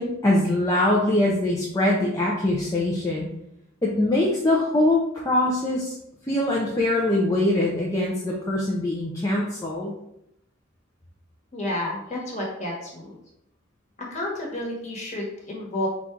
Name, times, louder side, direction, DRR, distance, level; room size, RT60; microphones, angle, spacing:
voice 1, 0.0-3.3 3.8-5.9 6.2-9.9, left 1 dB, 15° left, -4 dB, 0.5 m, -23 dB
voice 2, 11.5-13.1 14.0-15.9, left 1 dB, 35° left, -3 dB, 1.3 m, -31 dB
4.0 x 2.4 x 4.4 m, 0.78 s
head